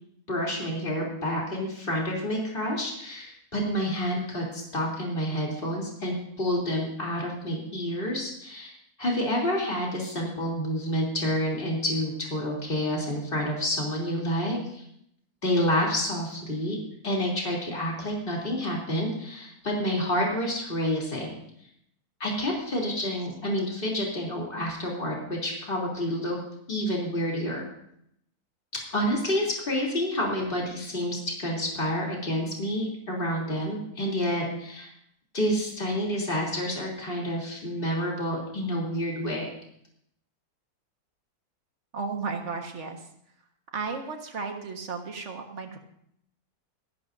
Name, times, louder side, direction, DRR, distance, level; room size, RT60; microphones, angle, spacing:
voice 1, 0.3-14.8 15.4-16.8 17.0-21.3 22.2-26.4 26.7-27.7 28.9-34.9 35.3-39.5, equal, 35° left, -2 dB, 3.6 m, -29 dB
voice 2, 41.9-43.1 43.7-45.8, right 4 dB, 50° right, 4 dB, 1.8 m, -34 dB
25.0 x 11.5 x 2.7 m, 0.71 s
omnidirectional pair, 1.6 m